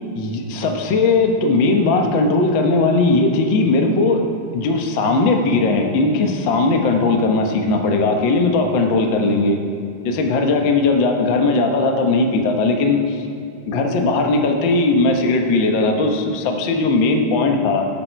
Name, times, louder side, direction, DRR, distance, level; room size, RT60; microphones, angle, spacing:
voice 1, 0.1-4.2 4.5-9.6 10.0-13.2 13.7-17.9, left 3 dB, 90° left, 3 dB, 1.0 m, -18 dB
19.0 x 8.6 x 4.6 m, 2.5 s
omnidirectional pair, 4.1 m